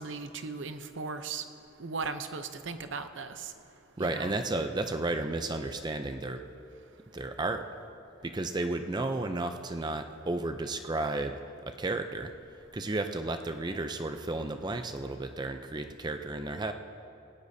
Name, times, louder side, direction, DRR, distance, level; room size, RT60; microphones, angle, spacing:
voice 1, 0.0-1.4 1.8-3.5 4.0-4.3, right 4 dB, 65° right, 9 dB, 0.7 m, -37 dB
voice 2, 4.0-6.4 7.1-7.6 8.2-12.3 12.7-16.7, right 2 dB, 20° right, 7 dB, 0.5 m, -33 dB
17.5 x 17.0 x 2.7 m, 2.7 s
head